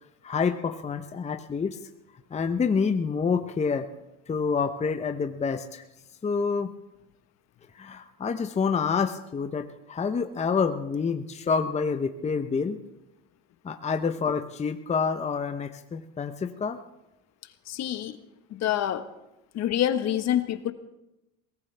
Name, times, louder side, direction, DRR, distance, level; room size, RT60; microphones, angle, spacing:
voice 1, 0.2-1.8 2.3-3.9 4.3-5.8 6.2-6.7 7.7-12.8 13.6-16.8, left 5 dB, 20° left, 7 dB, 0.8 m, -27 dB
voice 2, 17.7-18.2 18.5-19.1 19.5-20.7, left 11 dB, 55° left, 9 dB, 1.4 m, -26 dB
21.5 x 18.0 x 3.5 m, 0.91 s
supercardioid pair, 100°, 32 cm